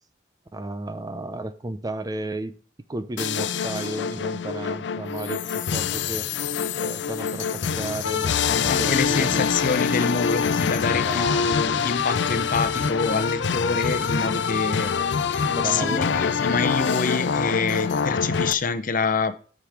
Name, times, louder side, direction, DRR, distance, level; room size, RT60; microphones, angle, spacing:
voice 1, 0.5-2.6 2.9-6.3 6.8-9.5 10.9-11.9 15.5-16.1, right 2 dB, 20° right, 0.5 m, -33 dB
sound 1, 3.2-18.5, left 6 dB, 80° left, 0.5 m, -25 dB
voice 2, 8.7-14.9 15.3-19.3, left 4 dB, 50° left, 0.8 m, -26 dB
sound 2, 10.8-14.0, left 1 dB, 85° right, 1.9 m, -42 dB
8.3 x 5.1 x 5.9 m
head